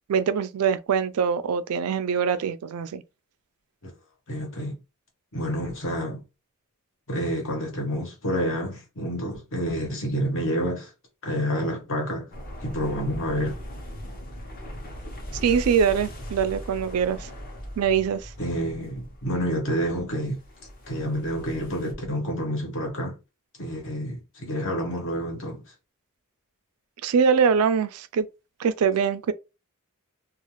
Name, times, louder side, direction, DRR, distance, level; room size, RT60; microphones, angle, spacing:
voice 1, 0.1-3.0 15.4-17.3 17.8-18.3 27.0-28.3 28.6-29.3, right 6 dB, 85° right, 0.4 m, -23 dB
voice 2, 4.3-4.8 5.3-6.2 7.1-10.9 11.2-12.3 12.6-13.6 18.4-20.4 20.9-23.2 23.6-25.6, equal, 60° left, 1.1 m, -28 dB
sound 1, 12.3-21.9, equal, 45° left, 0.8 m, -39 dB
2.4 x 2.4 x 3.0 m
head